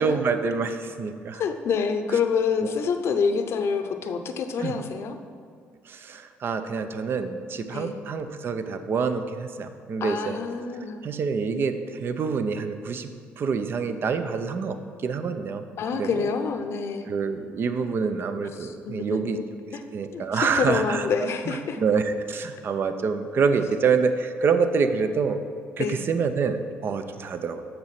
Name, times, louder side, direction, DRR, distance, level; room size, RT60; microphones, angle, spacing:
voice 1, 0.0-1.4 4.6-4.8 5.9-10.4 11.0-13.1 13.4-15.6 16.0-16.3 17.1-19.4 19.9-21.1 21.5-21.6 21.8-25.4 25.8-27.6, right 5 dB, 50° right, 9 dB, 0.7 m, -26 dB
voice 2, 1.3-5.2 7.7-8.0 10.0-11.0 15.8-17.1 18.5-19.4 19.7-19.8 20.1-21.8 25.8-26.0, left 5 dB, 60° left, 8 dB, 0.7 m, -27 dB
6.9 x 6.5 x 5.9 m, 2.2 s
supercardioid pair, 80°, 5 cm